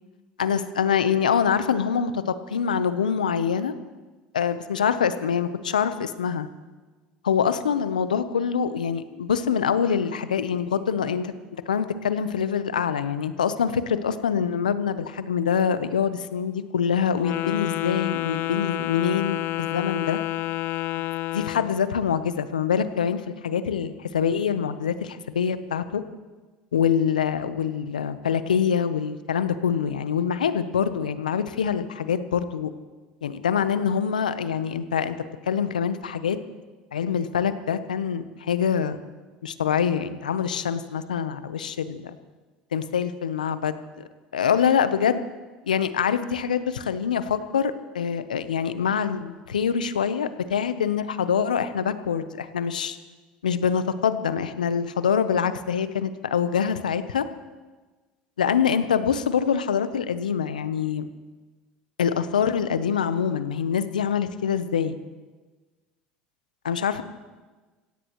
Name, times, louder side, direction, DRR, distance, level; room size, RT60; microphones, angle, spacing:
voice 1, 0.4-3.7 4.3-6.5 7.2-11.3 11.7-20.2 21.3-26.0 26.7-32.7 33.2-35.2 35.4-36.4 36.9-39.0 39.4-42.1 42.7-43.7 44.3-45.2 45.7-53.0 53.4-57.2 58.4-61.1 62.0-65.0 66.6-67.0, left 7 dB, 90° left, 12 dB, 0.8 m, -25 dB
Wind instrument woodwind instrument, 17.2-21.8, left 17 dB, 55° left, 0.4 m, -29 dB
26.0 x 16.5 x 3.1 m, 1.3 s
hypercardioid pair, 75°, 4 cm